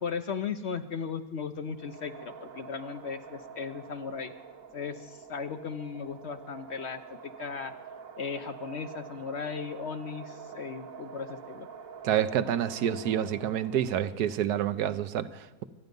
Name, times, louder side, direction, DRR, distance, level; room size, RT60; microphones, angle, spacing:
voice 1, 0.0-4.3 4.7-7.7 8.2-11.7, left 6 dB, 55° left, 9 dB, 0.8 m, -36 dB
sound 1, 1.7-14.2, right 6 dB, 60° right, 1.5 m, -46 dB
voice 2, 12.0-15.6, right 10 dB, 80° right, 12 dB, 1.3 m, -28 dB
25.5 x 9.3 x 5.3 m, 1.2 s
omnidirectional pair, 1.7 m